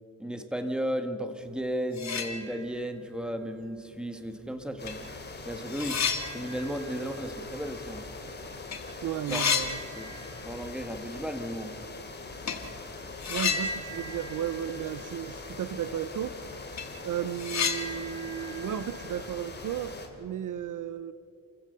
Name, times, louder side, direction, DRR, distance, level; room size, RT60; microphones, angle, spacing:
voice 1, 0.2-5.0 5.4-6.0 6.3-8.0 9.3-9.4 10.0-10.1 10.4-11.7, equal, ahead, 7 dB, 1.6 m, -34 dB
sound 1, 1.5-1.6 1.9-2.9 3.3-3.4 4.4-4.5 4.9-8.3 8.6-8.8 9.0-10.6 10.9-11.0 12.4-12.7 13.2-15.3 15.6-15.7 16.2-16.3 16.6-19.8, left 5 dB, 50° left, 2.1 m, -33 dB
sound 2, 4.8-20.1, left 3 dB, 30° left, 2.7 m, -42 dB
voice 2, 9.0-9.8 13.3-16.4 17.0-21.1, right 10 dB, 60° right, 14 dB, 0.7 m, -34 dB
29.0 x 15.0 x 6.8 m, 2.8 s
cardioid pair, 120°, 35 cm